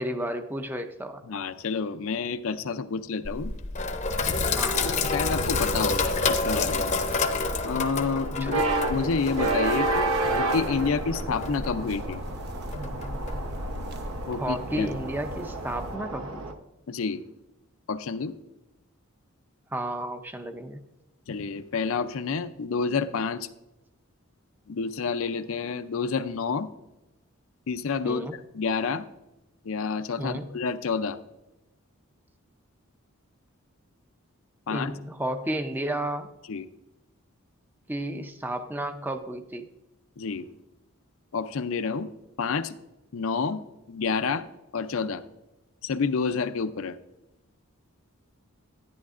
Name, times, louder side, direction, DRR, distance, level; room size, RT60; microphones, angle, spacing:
voice 1, 0.0-1.2 4.5-4.8 8.4-8.6 14.2-16.4 19.7-20.8 28.0-28.4 30.2-30.6 34.7-36.3 37.9-39.7, right 1 dB, 10° right, 7 dB, 0.4 m, -32 dB
voice 2, 1.3-3.5 4.8-6.9 7.6-8.6 8.9-12.2 14.3-14.9 16.9-17.2 17.9-18.3 21.3-23.5 24.7-26.7 27.7-28.2 28.5-29.0 29.6-31.2 34.7-35.0 36.5-36.7 40.2-40.5 41.3-42.1 42.4-42.8 43.1-43.6 43.9-44.4 44.7-45.2 45.8-47.0, left 5 dB, 70° left, 11 dB, 0.5 m, -29 dB
Sink (filling or washing), 3.2-14.2, left 3 dB, 35° left, 0.7 m, -29 dB
sound 1, 4.7-16.5, right 2 dB, 85° right, 0.9 m, -32 dB
sound 2, 8.6-16.0, right 1 dB, 50° right, 0.7 m, -41 dB
10.5 x 10.5 x 2.5 m, 0.97 s
head